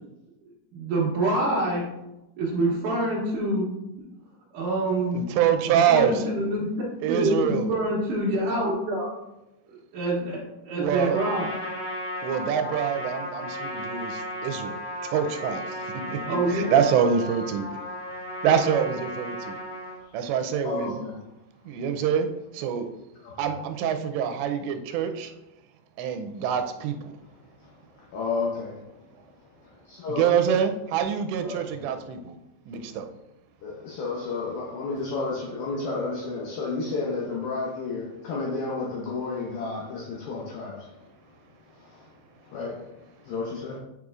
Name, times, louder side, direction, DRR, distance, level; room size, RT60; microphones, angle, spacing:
voice 1, 0.7-1.8 2.4-3.7 4.5-5.2 5.7-6.7 7.1-9.1 9.7-11.5 16.3-16.7, right 1 dB, 60° right, 2.6 m, -26 dB
voice 2, 5.1-6.1 7.0-7.7 10.8-11.2 12.2-14.8 15.1-17.7 18.4-19.6 20.1-21.0 21.7-22.3 22.5-22.9 23.4-25.3 26.0-27.1 30.1-32.4 32.7-33.1, right 8 dB, 85° right, 2.8 m, -25 dB
Trumpet, 11.0-20.0, left 1 dB, 45° left, 2.5 m, -35 dB
voice 3, 20.6-21.2 23.2-23.5 24.9-25.0 27.2-27.3 27.6-28.9 29.6-30.4 31.4-31.7 33.6-41.1 41.6-42.1 42.4-43.8, left 3 dB, 75° left, 2.2 m, -32 dB
6.8 x 6.4 x 2.4 m
omnidirectional pair, 5.0 m